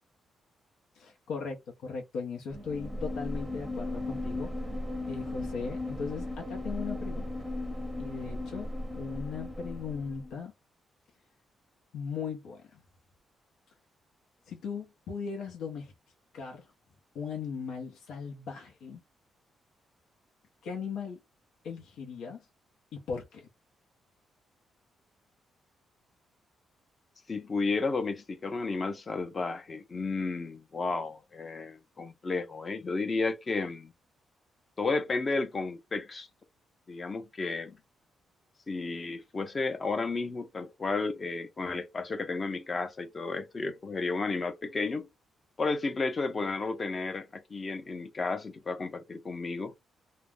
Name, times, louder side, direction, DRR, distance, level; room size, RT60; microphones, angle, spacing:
voice 1, 0.9-4.5 5.1-7.4 8.0-8.7 8.9-10.5 11.9-12.8 14.5-15.9 16.3-16.7 17.1-19.0 20.6-21.2 21.6-22.5 22.9-23.5, left 5 dB, 90° left, 0.6 m, -38 dB
sound 1, 2.5-10.3, left 1 dB, 10° right, 0.6 m, -36 dB
voice 2, 27.3-33.9 34.8-36.3 36.9-37.8 38.7-45.1 45.6-49.7, left 3 dB, 30° left, 0.5 m, -32 dB
2.3 x 2.0 x 3.3 m
cardioid pair, 135°, 0 cm